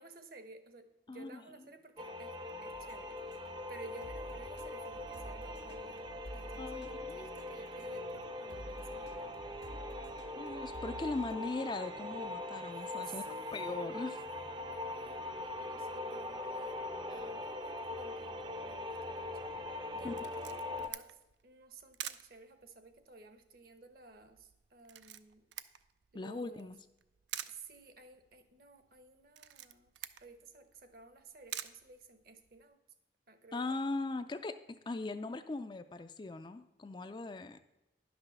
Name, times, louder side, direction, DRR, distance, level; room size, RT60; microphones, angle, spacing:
voice 1, 0.0-9.4 12.7-19.5 19.9-25.5 26.1-26.7 27.5-32.8 33.3-33.8, right 3 dB, 50° right, 9 dB, 1.0 m, -55 dB
voice 2, 1.1-1.4 6.6-7.3 10.3-14.2 17.1-17.3 20.0-20.1 26.1-26.8 33.5-37.6, left 3 dB, 25° left, 9 dB, 0.3 m, -40 dB
sound 1, 2.0-20.9, left 2 dB, 25° right, 0.5 m, -42 dB
sound 2, 2.7-8.2 8.5-11.3, equal, 85° left, 1.6 m, -51 dB
Camera, 20.2-32.7, right 12 dB, 70° right, 0.5 m, -49 dB
10.5 x 6.1 x 6.5 m, 0.97 s
head